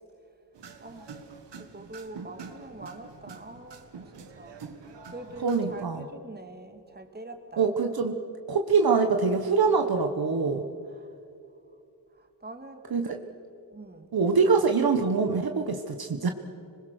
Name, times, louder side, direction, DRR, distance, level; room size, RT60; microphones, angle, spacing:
sound 1, 0.5-5.8, right 5 dB, 85° right, 1.7 m, -45 dB
voice 1, 0.8-1.2 1.6-3.9 4.1-4.6 5.1-7.7 10.9-11.1 12.1-12.9 13.7-14.1, right 2 dB, 25° right, 6 dB, 2.2 m, -44 dB
voice 2, 5.4-6.0 7.6-8.2 8.5-10.6 12.9-13.2 14.1-16.3, right 5 dB, 60° right, 5 dB, 1.3 m, -24 dB
26.5 x 21.0 x 6.5 m, 2.6 s
wide cardioid pair, 90°, 42 cm